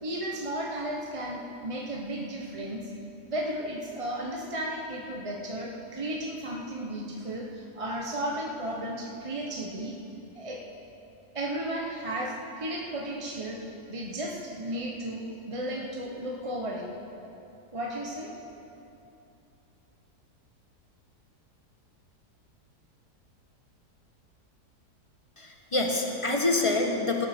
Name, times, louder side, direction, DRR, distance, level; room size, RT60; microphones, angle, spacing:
voice 1, 0.0-2.9 3.3-9.9 10.3-10.6 11.3-13.6 13.9-16.9 17.7-18.3, right 1 dB, 25° right, -1 dB, 0.8 m, -34 dB
voice 2, 25.4-27.3, left 2 dB, 20° left, 2 dB, 1.1 m, -26 dB
17.5 x 12.0 x 4.4 m, 2.9 s
omnidirectional pair, 1.8 m